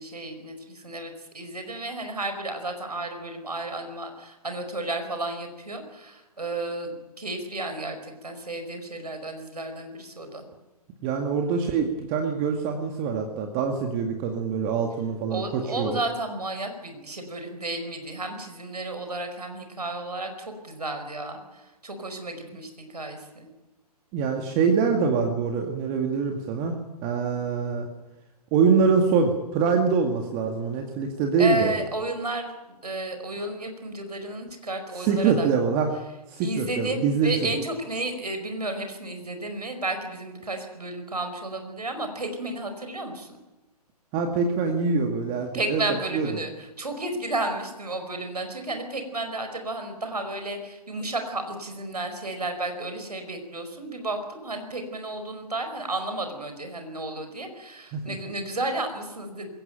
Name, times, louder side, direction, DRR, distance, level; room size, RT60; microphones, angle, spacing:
voice 1, 0.0-10.4 15.3-23.5 31.4-35.5 36.4-43.4 45.5-59.5, right 2 dB, 75° right, 6 dB, 5.0 m, -32 dB
voice 2, 11.0-16.0 24.1-27.9 28.5-31.7 35.0-35.9 36.3-37.3 44.1-45.8 46.1-46.3 57.9-58.2, right 5 dB, 25° right, 4 dB, 2.1 m, -24 dB
21.5 x 18.0 x 9.1 m, 1.0 s
figure-of-eight pair, 125°, 20 cm